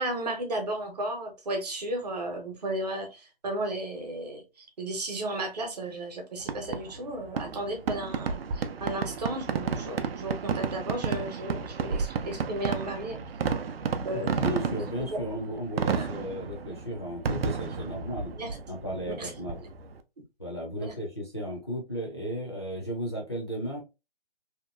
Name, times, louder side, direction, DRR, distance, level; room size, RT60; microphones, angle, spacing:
voice 1, 0.0-4.4 4.8-13.2 14.0-14.4 15.1-15.2 16.0-16.1 17.8-17.9 18.3-18.6 19.2-19.3 20.7-20.9, right 1 dB, 40° right, 0.8 m, -34 dB
Fireworks, 6.4-20.0, right 5 dB, 70° right, 0.5 m, -32 dB
voice 2, 14.1-18.4 18.7-19.7 20.4-23.8, equal, 25° left, 0.4 m, -35 dB
2.8 x 2.2 x 2.3 m
hypercardioid pair, 170°, 30 cm